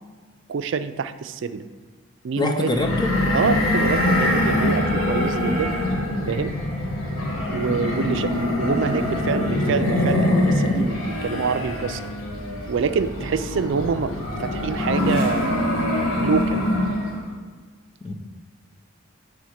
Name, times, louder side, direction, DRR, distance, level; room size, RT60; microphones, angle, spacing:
voice 1, 0.5-1.6 2.2-2.8 3.3-5.8 6.3-6.6 7.5-12.0 12.7-14.1 14.4-15.7 16.2-16.7, right 5 dB, 65° right, 10 dB, 0.4 m, -26 dB
voice 2, 2.4-3.1 18.0-18.1, left 2 dB, 20° left, 4 dB, 0.6 m, -24 dB
sound 1, 2.7-17.3, left 1 dB, 90° left, 1.6 m, -23 dB
8.2 x 3.5 x 6.4 m, 1.5 s
head